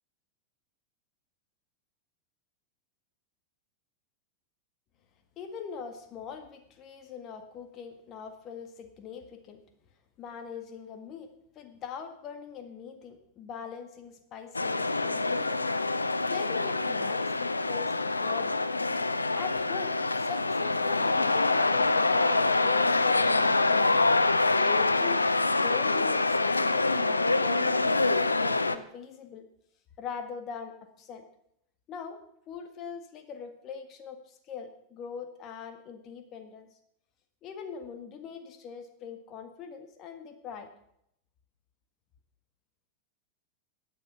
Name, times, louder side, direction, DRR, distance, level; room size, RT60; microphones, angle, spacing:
voice 1, 5.4-9.6 10.2-11.3 11.6-15.6 16.3-18.6 19.3-23.9 24.5-29.5 30.0-31.2 31.9-32.2 32.5-36.7 37.4-40.7, left 6 dB, 35° left, 7 dB, 1.8 m, -42 dB
sound 1, 14.5-28.8, left 3 dB, 80° left, 0.7 m, -25 dB
15.5 x 9.6 x 5.8 m, 0.73 s
figure-of-eight pair, 90°, 0 cm